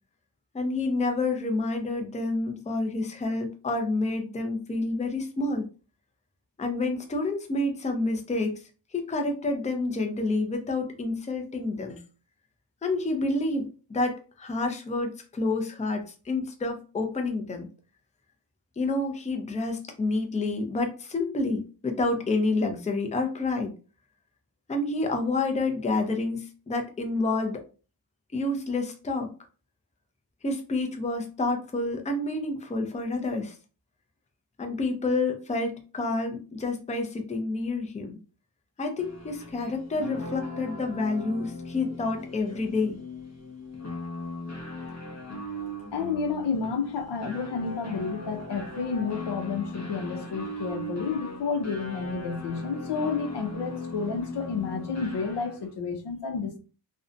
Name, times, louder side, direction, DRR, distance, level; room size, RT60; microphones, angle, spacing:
voice 1, 0.5-5.7 6.6-8.6 8.9-12.0 12.8-17.7 18.8-23.7 24.7-27.6 28.3-29.3 30.4-33.6 34.6-38.2 38.8-43.0, left 2 dB, 15° left, 0.5 m, -29 dB
sound 1, 39.0-55.7, left 2 dB, 40° left, 0.8 m, -38 dB
voice 2, 45.9-56.6, left 5 dB, 80° left, 0.7 m, -30 dB
2.5 x 2.1 x 2.5 m
wide cardioid pair, 100°, 41 cm